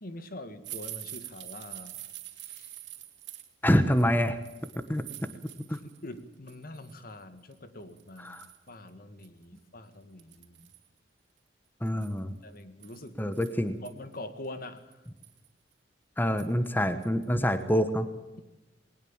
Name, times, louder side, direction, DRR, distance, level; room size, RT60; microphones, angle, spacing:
voice 1, 0.0-2.0 2.4-2.8 6.0-8.4 8.7-10.7 12.4-13.3 13.8-15.0, left 1 dB, 55° left, 10 dB, 1.9 m, -44 dB
sound 1, 0.6-6.0 6.3-6.9 7.5-7.6 8.0-8.7 9.2-9.3 9.6-9.7 10.2-10.9 11.9-13.9 14.4-14.5 14.9-15.5 16.4-16.7 17.0-17.2 17.6-17.7, right 14 dB, 85° right, 2.8 m, -45 dB
voice 2, 3.6-4.4 4.7-5.3 5.7-5.8 8.2-8.5 11.8-12.4 13.2-13.8 16.2-18.1, equal, 10° left, 10 dB, 1.2 m, -26 dB
20.5 x 19.5 x 7.3 m, 1.0 s
head